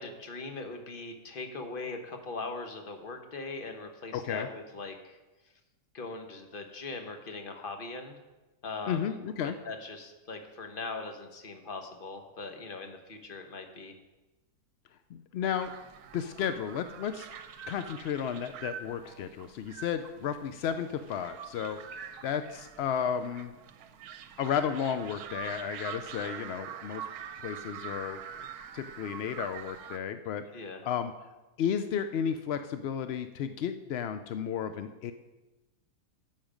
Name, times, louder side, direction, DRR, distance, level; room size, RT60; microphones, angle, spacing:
voice 1, 0.0-5.2 5.9-8.2 8.6-9.0 9.4-14.0 30.5-30.8, left 3 dB, 40° left, 5 dB, 1.1 m, -40 dB
voice 2, 4.1-4.5 8.9-9.6 15.1-15.7 16.1-17.3 17.7-23.5 24.4-27.1 27.4-28.2 28.7-31.2 31.6-35.1, left 8 dB, 75° left, 10 dB, 0.5 m, -33 dB
sound 1, 15.5-30.0, right 8 dB, 75° right, 1.2 m, -45 dB
12.0 x 7.6 x 5.1 m, 1.1 s
omnidirectional pair, 1.6 m